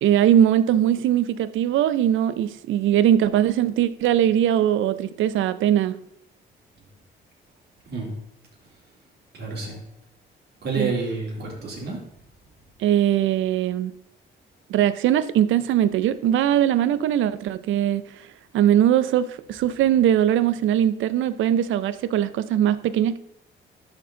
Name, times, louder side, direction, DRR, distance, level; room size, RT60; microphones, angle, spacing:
voice 1, 0.0-6.0 10.8-10.9 12.8-13.9 14.7-18.0 18.5-23.2, right 10 dB, 75° right, 15 dB, 0.5 m, -20 dB
voice 2, 9.3-9.8 10.6-12.0, right 3 dB, 55° right, -3 dB, 3.2 m, -29 dB
11.5 x 4.4 x 3.8 m, 0.76 s
cardioid pair, 90°, 20 cm